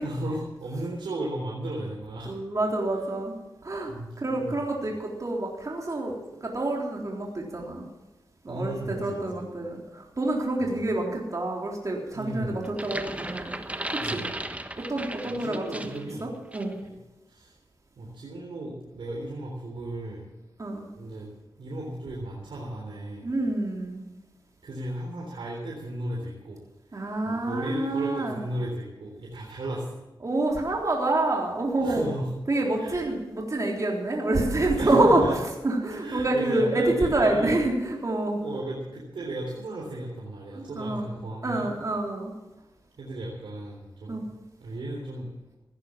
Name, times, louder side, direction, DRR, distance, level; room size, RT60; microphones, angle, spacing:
voice 1, 0.0-2.4 3.9-4.7 8.5-9.4 10.6-10.7 12.1-12.7 14.0-14.4 15.3-16.3 16.8-16.9 17.3-17.6 18.0-20.2 20.9-21.3 21.6-23.3 24.6-26.6 26.9-30.0 31.8-32.3 32.8-33.1 34.8-35.4 35.9-37.6 38.4-41.7 43.0-44.2 44.6-45.6, right 1 dB, 80° right, -3 dB, 3.7 m, -35 dB
voice 2, 2.3-3.9 4.2-7.9 8.4-13.6 13.9-14.3 14.8-15.9 16.2-16.8 20.6-20.9 23.2-24.0 26.9-28.4 30.2-32.1 32.5-35.2 35.6-38.4 40.5-41.0 41.4-42.3 44.1-44.2, right 2 dB, 40° right, -1 dB, 3.6 m, -27 dB
sound 1, 12.6-16.1 16.5-16.7, right 1 dB, 15° right, 1.3 m, -35 dB
17.0 x 10.0 x 7.4 m, 1.0 s
cardioid pair, 60°, 8 cm